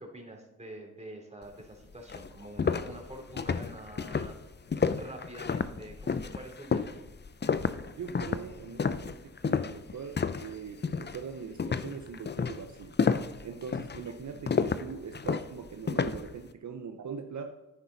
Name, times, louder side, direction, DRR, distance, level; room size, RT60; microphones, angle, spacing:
voice 1, 0.0-4.4 4.9-6.8, right 1 dB, 20° right, 1 dB, 3.3 m, -46 dB
sound 1, 1.6-1.7 2.1-10.5 10.8-11.2 11.6-16.3, left 5 dB, 35° left, 0.6 m, -30 dB
voice 2, 7.9-13.0 13.4-17.5, right 6 dB, 60° right, 6 dB, 0.9 m, -41 dB
10.5 x 9.3 x 4.1 m, 1.0 s
cardioid pair, 50°, 32 cm